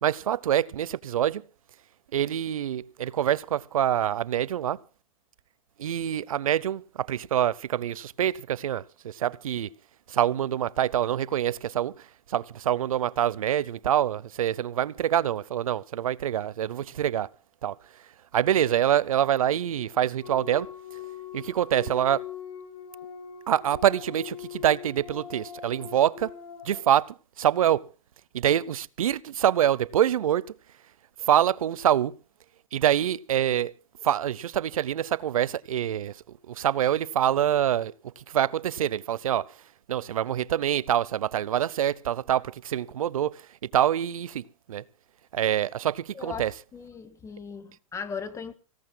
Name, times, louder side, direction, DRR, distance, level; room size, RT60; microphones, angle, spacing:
voice 1, 0.0-1.4 2.1-4.8 5.8-9.7 10.1-17.3 17.6-17.8 18.3-20.7 21.3-22.2 23.5-26.3 26.6-27.8 28.3-30.4 31.2-32.2 32.7-33.7 34.0-36.2 36.5-39.5 39.9-43.4 43.7-44.4 44.7-44.8 45.3-46.5, right 10 dB, 90° right, 0.7 m, -25 dB
sound 1, 20.2-26.8, left 9 dB, 75° left, 3.6 m, -42 dB
voice 2, 46.1-48.5, left 6 dB, 15° left, 1.6 m, -38 dB
27.0 x 17.0 x 2.3 m
hypercardioid pair, 130°, 17 cm